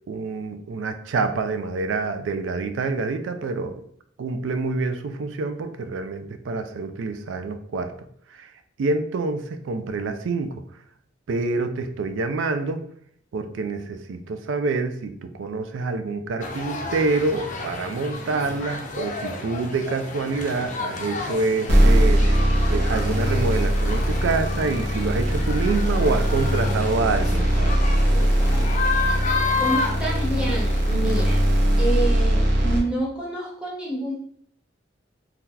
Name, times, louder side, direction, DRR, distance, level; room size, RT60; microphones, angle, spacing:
voice 1, 0.1-3.8 4.2-7.9 8.4-8.5 8.8-10.6 11.3-12.8 13.3-27.8, right 3 dB, 85° right, 9 dB, 0.4 m, -27 dB
sound 1, 16.4-31.4, left 3 dB, 40° left, 0.4 m, -31 dB
sound 2, 21.7-32.8, equal, 65° right, 0.8 m, -20 dB
voice 2, 29.6-31.4 31.8-34.1, right 1 dB, 5° right, -6 dB, 0.8 m, -28 dB
2.8 x 2.3 x 3.6 m, 0.64 s
head